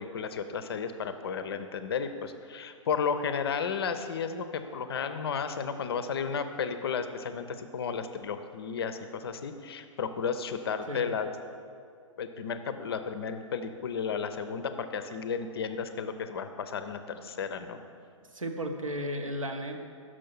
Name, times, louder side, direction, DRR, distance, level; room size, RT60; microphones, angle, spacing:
voice 1, 0.0-11.3 12.2-17.8, left 6 dB, 50° left, 9 dB, 0.5 m, -33 dB
voice 2, 18.3-19.8, equal, 75° right, 4 dB, 0.8 m, -34 dB
6.2 x 5.4 x 6.0 m, 2.3 s
figure-of-eight pair, 120°, 17 cm